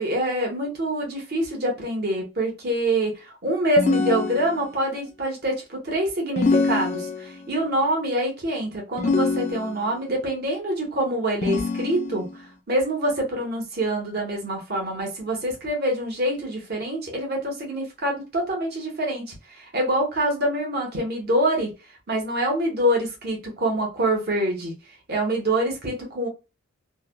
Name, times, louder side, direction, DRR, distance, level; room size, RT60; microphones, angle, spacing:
voice 1, 0.0-12.2 12.7-21.7 22.1-24.7 25.1-26.3, right 1 dB, 50° right, 0 dB, 1.1 m, -25 dB
sound 1, 3.8-4.9 6.4-7.5 9.0-10.0 11.4-12.4, left 3 dB, 35° left, 0.3 m, -24 dB
3.2 x 2.2 x 2.2 m, 0.28 s
head